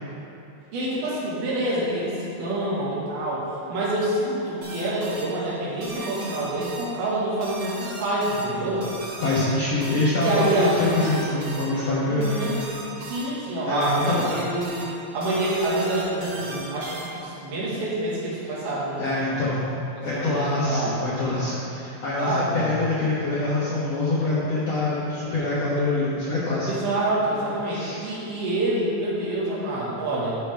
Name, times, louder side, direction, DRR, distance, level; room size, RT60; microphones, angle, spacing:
voice 1, 0.7-3.4 3.7-8.9 10.2-10.8 12.1-12.6 13.0-14.9 15.1-19.5 20.1-21.0 22.2-22.7 26.7-30.3, right 1 dB, 75° right, -7 dB, 3.6 m, -27 dB
sound 1, 4.6-17.4, right 2 dB, 40° right, 1.8 m, -38 dB
voice 2, 9.2-12.3 13.6-14.3 19.0-19.7 20.0-26.7 27.7-28.0, left 2 dB, 70° left, -8 dB, 1.5 m, -25 dB
12.0 x 5.7 x 3.4 m, 2.9 s
omnidirectional pair, 4.4 m